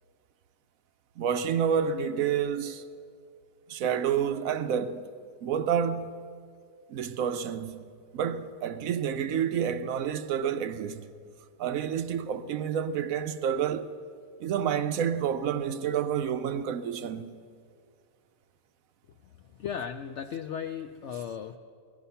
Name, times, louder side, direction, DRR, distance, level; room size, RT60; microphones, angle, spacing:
voice 1, 1.2-2.8 3.7-5.0 5.4-6.2 6.9-7.9 8.1-11.1 11.6-13.9 14.4-17.3, right 8 dB, 70° right, 0.9 m, -29 dB
voice 2, 19.2-21.6, left 8 dB, 85° left, 0.6 m, -36 dB
18.5 x 13.0 x 5.6 m
omnidirectional pair, 1.8 m